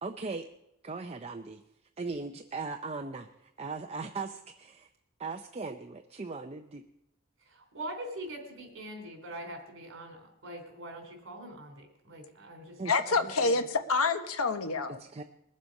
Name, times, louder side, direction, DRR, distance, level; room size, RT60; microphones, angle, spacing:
voice 1, 0.0-0.5 0.8-1.6 2.0-4.9 5.2-6.8 12.8-13.0 14.9-15.2, right 4 dB, 30° right, 6 dB, 0.5 m, -38 dB
voice 2, 7.5-13.6, right 1 dB, 60° right, 4 dB, 3.5 m, -43 dB
voice 3, 12.9-15.0, left 4 dB, 75° left, 8 dB, 1.0 m, -27 dB
20.5 x 7.4 x 5.3 m, 0.86 s
head